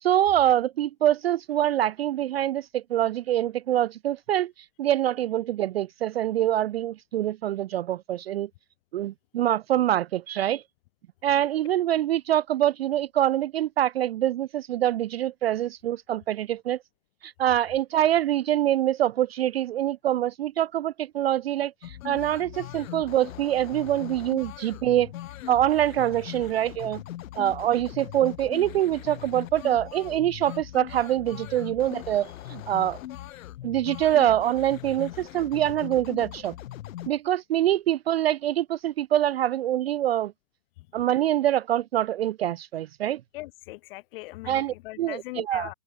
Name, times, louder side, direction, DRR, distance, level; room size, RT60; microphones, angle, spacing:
voice 1, 0.0-4.5 4.8-8.5 8.9-10.6 11.2-16.8 17.2-25.1 25.5-27.0 27.4-33.0 33.6-36.5 37.1-40.3 40.9-43.2 44.5-45.7, right 12 dB, 45° right, 0.4 m, -25 dB
sound 1, 21.8-37.1, left 13 dB, 65° left, 0.7 m, -40 dB
voice 2, 43.3-45.7, left 20 dB, 40° left, 1.7 m, -40 dB
hypercardioid pair, 140°, 43 cm